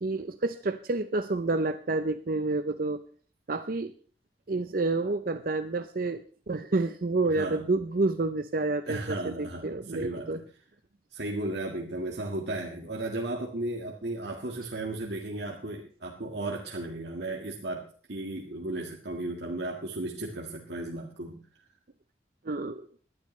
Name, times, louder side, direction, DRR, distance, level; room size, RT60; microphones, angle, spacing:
voice 1, 0.0-3.0 3.5-3.9 4.5-6.2 6.5-10.4 22.4-22.8, right 3 dB, 50° right, 9 dB, 0.6 m, -29 dB
voice 2, 7.3-7.6 8.9-10.4 11.1-21.4, right 2 dB, 75° right, -1 dB, 1.8 m, -35 dB
20.5 x 12.0 x 3.2 m, 0.43 s
head